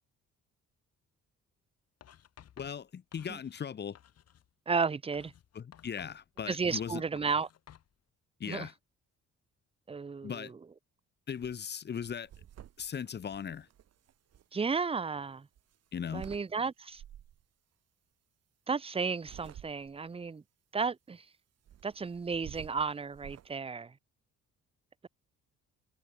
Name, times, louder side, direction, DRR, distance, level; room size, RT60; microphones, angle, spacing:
Writing, 2.0-3.7 3.9-4.5 5.1-7.9, left 10 dB, 55° left, 1.3 m, -57 dB
voice 1, 2.6-4.0 5.5-7.0 8.4-8.7 10.2-10.5 11.3-12.3 12.8-13.7 15.9-16.3, left 7 dB, 35° left, 0.8 m, -38 dB
voice 2, 4.7-5.3 6.5-7.5 8.5-8.7 9.9-10.6 14.5-15.5 16.1-17.0 18.7-20.4 20.7-21.3 21.8-24.0, right 5 dB, 20° right, 0.6 m, -33 dB
sound 1, 11.3-11.6 11.9-14.4 15.6-16.5 16.9-17.4 19.0-20.1 21.7-23.5, right 11 dB, 55° right, 1.1 m, -51 dB
cardioid pair, 90°, 30 cm